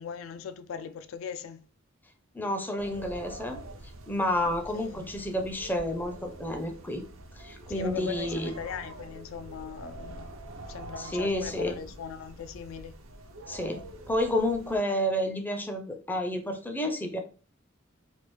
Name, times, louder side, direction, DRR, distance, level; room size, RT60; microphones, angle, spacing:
voice 1, 0.0-1.6 4.5-5.1 7.7-10.3 10.7-12.9, left 7 dB, 85° left, 0.3 m, -39 dB
voice 2, 2.3-3.6 4.1-7.0 7.4-8.5 11.0-11.8 13.5-17.2, left 1 dB, 10° left, 0.4 m, -30 dB
sound 1, 2.8-14.8, right 1 dB, 85° right, 0.5 m, -45 dB
3.4 x 2.4 x 3.0 m
head